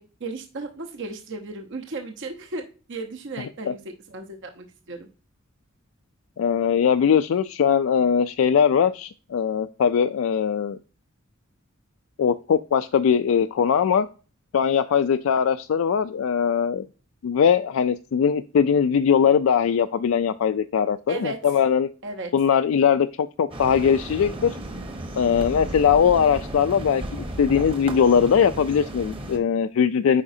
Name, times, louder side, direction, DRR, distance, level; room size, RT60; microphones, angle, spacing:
voice 1, 0.0-5.1 21.1-21.4 22.0-22.3, right 3 dB, 65° right, 4 dB, 0.8 m, -35 dB
voice 2, 6.4-10.8 12.2-14.1 14.5-16.9 17.2-21.9 22.3-24.6 25.2-30.2, left 7 dB, 75° left, 9 dB, 0.3 m, -21 dB
sound 1, 23.5-29.4, right 1 dB, 25° right, 1.0 m, -34 dB
8.4 x 4.9 x 2.7 m, 0.35 s
head